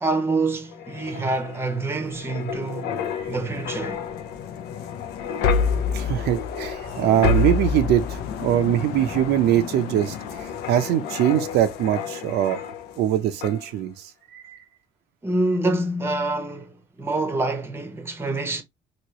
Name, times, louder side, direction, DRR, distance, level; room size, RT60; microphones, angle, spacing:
voice 1, 0.0-3.0 3.3-4.0 15.2-18.6, right 2 dB, 15° right, 0.8 m, -26 dB
sound 1, 0.7-13.0 13.4-13.6, left 6 dB, 75° left, 0.6 m, -29 dB
voice 2, 5.9-12.6 13.0-14.6, right 11 dB, 75° right, 0.6 m, -22 dB
3.1 x 2.9 x 2.8 m
cardioid pair, 110°, 17 cm